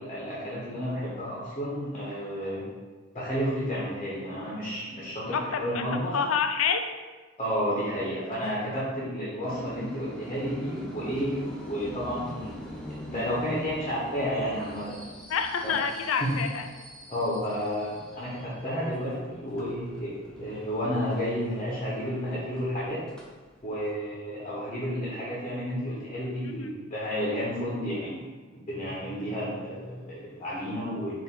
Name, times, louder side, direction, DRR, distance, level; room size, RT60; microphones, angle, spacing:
voice 1, 0.0-2.6 3.1-6.2 7.4-12.6 13.1-15.0 15.6-15.7 16.2-16.3 17.1-23.0 23.6-31.2, equal, 30° left, -7 dB, 0.8 m, -31 dB
voice 2, 5.3-5.8 6.1-6.8 15.3-16.7 26.4-26.7, left 6 dB, 80° left, 6 dB, 0.4 m, -28 dB
sound 1, 9.4-23.9, equal, 5° left, 0.5 m, -44 dB
4.3 x 2.5 x 3.6 m, 1.3 s
head